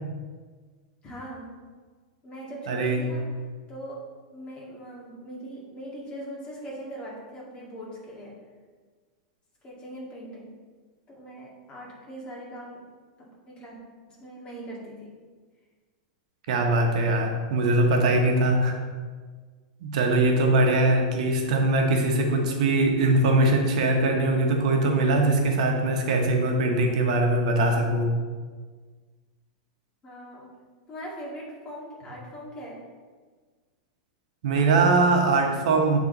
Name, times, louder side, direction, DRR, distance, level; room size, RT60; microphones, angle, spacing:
voice 1, 1.0-1.5 2.2-3.3 3.7-4.0 4.3-8.4 9.6-10.5 11.1-12.9 13.2-13.8 14.1-15.1 30.0-30.5 30.9-32.8, equal, 25° left, -4 dB, 2.0 m, -40 dB
voice 2, 2.7-3.0 16.5-18.8 19.8-28.1 34.4-36.0, right 2 dB, 70° right, 2 dB, 1.0 m, -22 dB
8.5 x 3.6 x 3.9 m, 1.5 s
supercardioid pair, 130°, 4 cm